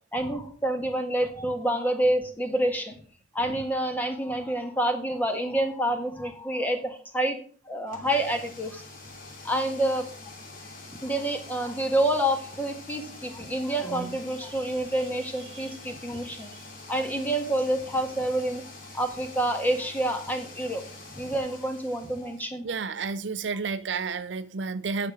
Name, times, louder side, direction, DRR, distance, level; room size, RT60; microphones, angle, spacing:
voice 1, 0.1-3.0 3.3-7.4 7.7-8.8 9.4-10.1 11.0-16.5 16.9-18.6 18.9-20.8 21.2-22.7, right 1 dB, 10° left, 1.7 m, -28 dB
sound 1, 7.9-22.5, left 3 dB, 50° left, 2.7 m, -45 dB
voice 2, 22.6-25.1, right 4 dB, 75° right, 0.6 m, -31 dB
9.5 x 6.9 x 6.2 m
head